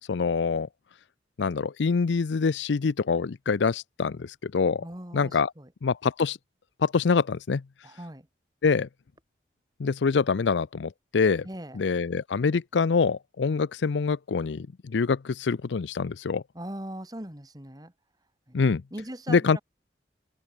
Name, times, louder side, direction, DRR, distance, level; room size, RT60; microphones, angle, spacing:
voice 1, 0.1-0.7 1.4-4.8 5.1-5.5 5.8-6.4 6.8-7.6 8.6-8.9 9.8-11.5 11.7-16.4 18.5-18.8 19.3-19.6, left 5 dB, 80° left, 0.5 m, -25 dB
voice 2, 4.8-5.7 7.8-8.3 11.4-11.8 16.5-17.9 18.5-18.6 18.9-19.6, right 1 dB, 20° right, 2.5 m, -40 dB
open air
head